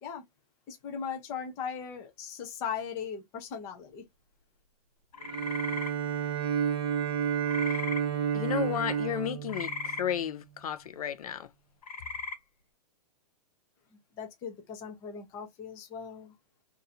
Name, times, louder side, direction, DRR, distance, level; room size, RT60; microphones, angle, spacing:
voice 1, 0.7-4.0 14.2-16.4, left 7 dB, 15° left, 0.5 m, -38 dB
sound 1, 5.1-5.9 7.5-8.0 9.5-10.0 11.8-12.4, left 3 dB, 85° left, 1.2 m, -37 dB
Bowed string instrument, 5.2-10.4, right 8 dB, 40° right, 0.7 m, -31 dB
voice 2, 8.3-11.5, left 10 dB, 65° left, 0.5 m, -33 dB
2.6 x 2.5 x 4.1 m
hypercardioid pair, 175°, 20 cm